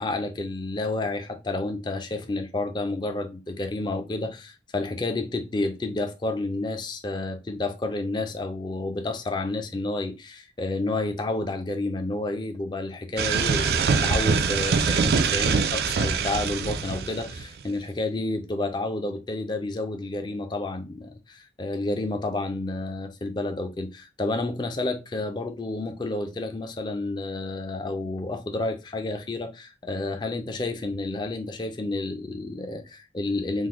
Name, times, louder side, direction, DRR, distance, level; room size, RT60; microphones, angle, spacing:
voice 1, 0.0-33.7, left 2 dB, 25° left, 0.4 m, -30 dB
sound 1, 13.2-17.6, right 5 dB, 55° right, 0.3 m, -24 dB
3.6 x 2.1 x 2.9 m
head